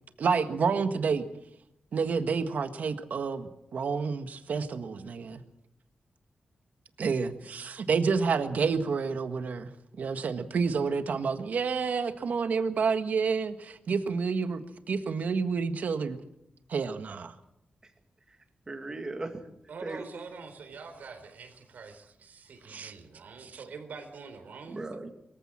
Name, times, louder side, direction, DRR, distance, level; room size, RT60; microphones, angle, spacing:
voice 1, 0.2-1.2 1.9-5.4 7.0-9.7 10.0-16.2 16.7-17.3 22.7-22.9 23.4-23.5, right 5 dB, 65° right, 9 dB, 1.6 m, -29 dB
voice 2, 18.7-19.5 19.8-20.0 24.7-25.1, right 2 dB, 25° right, 5 dB, 2.1 m, -38 dB
voice 3, 19.7-24.8, right 5 dB, 85° right, 5 dB, 4.0 m, -45 dB
23.5 x 15.0 x 7.5 m, 0.83 s
wide cardioid pair, 170°, 3 cm